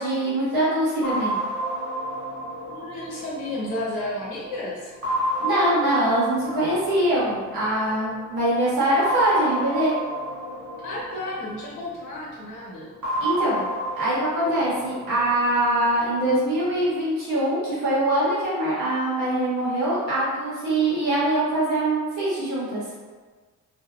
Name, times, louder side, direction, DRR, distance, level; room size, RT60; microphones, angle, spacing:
voice 1, 0.0-1.3 5.4-9.9 13.2-13.6 14.0-22.8, right 1 dB, 90° right, -9 dB, 1.2 m, -23 dB
sound 1, 1.0-4.4 5.0-7.9 9.0-12.1 13.0-16.1, right 1 dB, 70° right, 1.0 m, -31 dB
voice 2, 2.7-4.9 10.8-12.9, left 1 dB, 90° left, -4 dB, 0.8 m, -32 dB
2.6 x 2.1 x 2.2 m, 1.4 s
cardioid pair, 90°, 30 cm